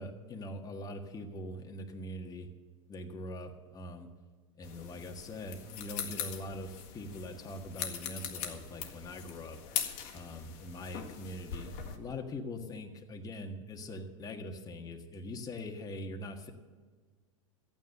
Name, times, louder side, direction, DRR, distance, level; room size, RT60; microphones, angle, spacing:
voice 1, 0.0-2.5 2.9-4.1 4.6-9.6 10.1-16.5, left 1 dB, 20° left, 3 dB, 1.6 m, -42 dB
sound 1, 4.6-12.0, left 8 dB, 55° left, 1.7 m, -41 dB
13.5 x 9.3 x 6.7 m, 1.5 s
hypercardioid pair, 100°, 16 cm